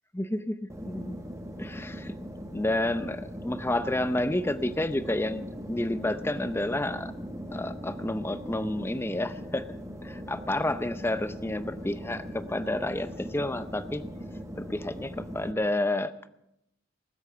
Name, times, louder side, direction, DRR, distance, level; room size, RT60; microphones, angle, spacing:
voice 1, 0.2-1.2 1.6-2.1 2.5-7.1 7.5-9.6 10.0-14.0 14.6-16.1, left 1 dB, 10° left, 12 dB, 0.6 m, -30 dB
sound 1, 0.7-15.5, equal, 15° right, 1.3 m, -40 dB
19.5 x 8.1 x 6.8 m, 0.83 s
head